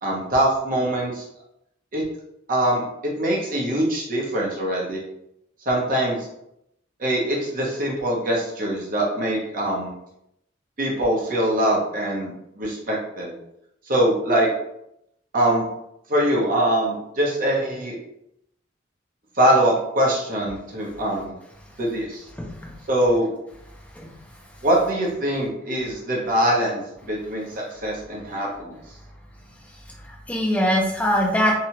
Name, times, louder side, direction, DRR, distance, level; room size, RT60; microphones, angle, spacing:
voice 1, 0.0-1.2 1.9-2.0 2.5-5.0 5.7-6.3 7.0-9.9 10.8-13.3 13.9-14.5 15.3-15.6 16.1-17.9 19.4-21.3 21.8-22.2 22.9-23.3 24.6-28.8, right 1 dB, 45° right, -3 dB, 0.8 m, -23 dB
voice 2, 22.4-22.7 24.0-24.1 30.1-31.5, equal, 10° left, -2 dB, 0.5 m, -22 dB
2.8 x 2.3 x 2.9 m, 0.79 s
head